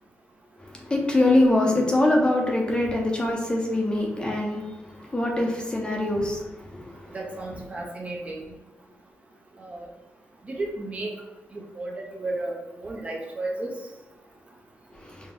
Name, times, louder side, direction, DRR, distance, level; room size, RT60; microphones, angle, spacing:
voice 1, 0.9-4.6 5.1-6.4, left 1 dB, 20° left, -1 dB, 0.7 m, -22 dB
voice 2, 7.1-8.4 9.6-9.8 10.5-11.1 11.5-13.7, right 2 dB, 30° right, -1 dB, 0.7 m, -33 dB
4.2 x 2.3 x 3.6 m, 1.1 s
cardioid pair, 110°, 5 cm